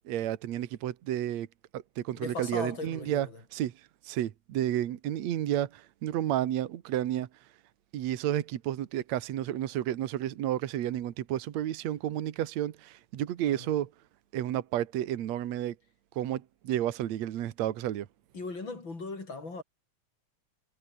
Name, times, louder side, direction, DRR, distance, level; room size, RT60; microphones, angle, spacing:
voice 1, 0.1-1.5 1.7-3.7 4.0-7.3 7.9-13.9 14.3-15.8 16.2-18.1, right 12 dB, 70° right, 2.4 m, -31 dB
voice 2, 2.2-3.3 13.5-13.7 18.3-19.6, left 3 dB, 40° left, 5.3 m, -38 dB
omnidirectional pair, 3.4 m